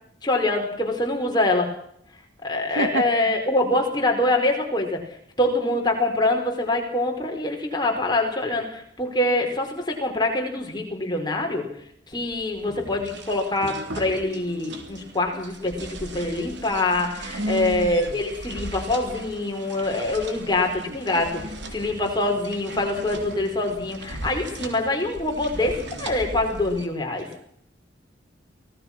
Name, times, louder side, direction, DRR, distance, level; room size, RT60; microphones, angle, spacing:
voice 1, 0.2-1.7 2.4-5.0 5.4-11.6 12.1-21.4 21.7-27.3, left 2 dB, 20° left, 2 dB, 4.8 m, -24 dB
voice 2, 2.7-3.4 17.4-18.2 20.9-21.0, right 1 dB, 80° right, 9 dB, 2.2 m, -29 dB
sound 1, 12.1-26.9, right 2 dB, 60° right, 3.5 m, -38 dB
25.0 x 18.0 x 6.1 m, 0.68 s
head